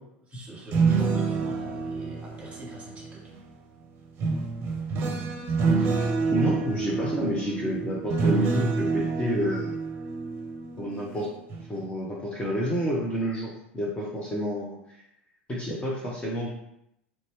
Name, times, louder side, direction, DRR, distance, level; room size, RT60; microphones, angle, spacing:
voice 1, 0.3-3.3, right 1 dB, 20° right, -3 dB, 1.4 m, -43 dB
sound 1, 0.5-3.4 4.2-11.1 11.5-11.8, right 4 dB, 40° right, 0.7 m, -27 dB
voice 2, 5.8-9.7 10.8-11.3 11.7-14.8 15.5-16.5, equal, 15° left, -4 dB, 0.8 m, -29 dB
3.3 x 2.7 x 3.3 m, 0.78 s
hypercardioid pair, 85°, 6 cm